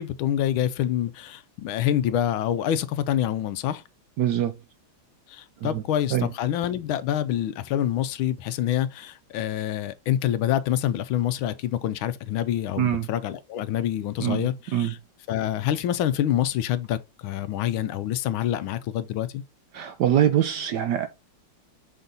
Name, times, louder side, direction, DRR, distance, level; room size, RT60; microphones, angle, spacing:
voice 1, 0.0-3.8 5.3-15.0 15.3-19.4, left 11 dB, 75° left, 1.4 m, -26 dB
voice 2, 4.2-4.5 5.6-5.8 6.1-6.3 12.8-13.1 14.2-14.4 14.7-14.9 19.7-21.1, right 10 dB, 70° right, 1.0 m, -23 dB
6.7 x 4.0 x 3.7 m
omnidirectional pair, 2.3 m